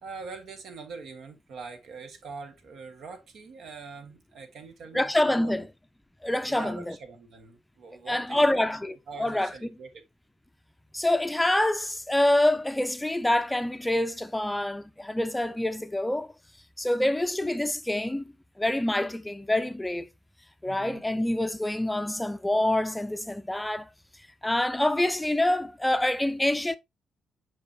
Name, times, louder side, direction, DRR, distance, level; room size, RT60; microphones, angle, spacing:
voice 1, 0.0-5.7 6.5-8.5 9.1-10.0 20.6-21.0, right 4 dB, 70° right, 1.5 m, -43 dB
voice 2, 4.9-5.7 6.2-7.0 8.1-9.5 10.9-16.3 16.8-20.1 20.6-23.9 24.4-26.8, left 1 dB, 10° left, 0.5 m, -26 dB
7.3 x 4.7 x 2.7 m
cardioid pair, 90°, 0 cm